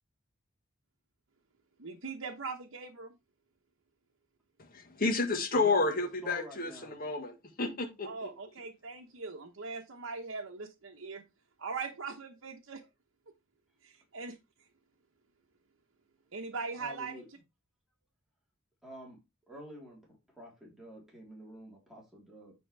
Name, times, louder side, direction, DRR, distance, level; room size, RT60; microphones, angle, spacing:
voice 1, 1.8-3.1 8.0-11.2 11.6-12.8 13.8-14.4 16.3-17.2, right 4 dB, 70° right, 1.0 m, -40 dB
voice 2, 5.0-7.3 7.6-8.3, left 3 dB, 45° left, 1.7 m, -30 dB
voice 3, 5.5-7.0 16.8-17.3 18.8-19.2 19.5-20.0 20.4-22.5, right 1 dB, ahead, 3.9 m, -49 dB
9.2 x 5.6 x 3.4 m
head